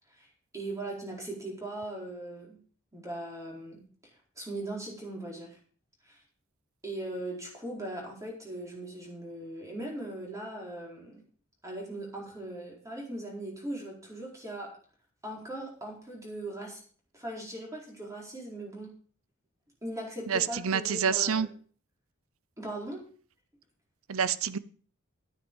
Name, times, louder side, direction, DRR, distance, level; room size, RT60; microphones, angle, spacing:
voice 1, 0.5-2.6 2.9-3.8 4.4-5.6 6.0-6.2 6.8-11.2 11.6-14.7 15.2-16.8 17.1-18.9 19.8-21.5 22.6-23.1, right 1 dB, 15° right, 4.4 m, -39 dB
voice 2, 20.3-21.5 24.1-24.6, right 7 dB, 75° right, 0.7 m, -27 dB
11.0 x 9.4 x 5.4 m
head